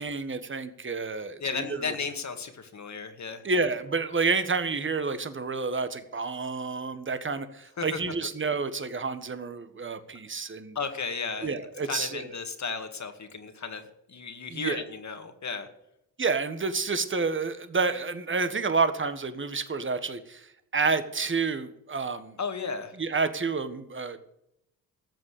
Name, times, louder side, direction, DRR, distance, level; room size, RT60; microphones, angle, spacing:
voice 1, 0.0-1.9 3.4-10.8 11.4-12.3 14.5-14.8 16.2-20.5 20.7-22.3 23.0-24.2, right 4 dB, 30° right, 10 dB, 1.6 m, -29 dB
voice 2, 1.4-3.4 7.8-8.0 10.8-11.6 11.8-13.8 14.1-15.7 22.4-22.9, left 5 dB, 45° left, 7 dB, 2.2 m, -34 dB
14.0 x 7.5 x 8.4 m, 0.81 s
supercardioid pair, 60°, 38 cm